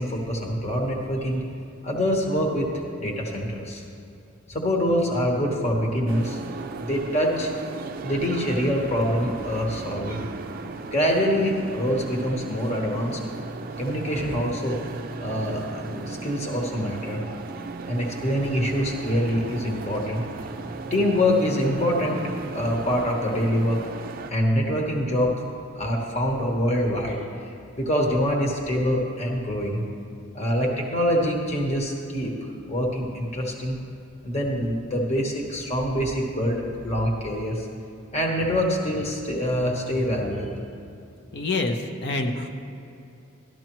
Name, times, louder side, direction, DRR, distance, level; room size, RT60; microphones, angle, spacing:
voice 1, 0.0-1.4 1.8-2.7 3.0-3.8 4.5-6.4 6.8-7.5 8.0-10.3 10.9-13.2 13.8-14.8 15.2-17.2 17.9-20.2 20.9-23.8 24.3-25.3 25.7-27.5 27.8-29.8 30.3-33.8 34.2-37.7 38.1-40.6, equal, 30° left, 0 dB, 1.1 m, -25 dB
sound 1, 6.1-24.3, right 3 dB, 45° right, 0.4 m, -36 dB
voice 2, 41.3-42.5, left 2 dB, 55° left, 4 dB, 0.7 m, -26 dB
12.5 x 12.5 x 3.0 m, 2.7 s
head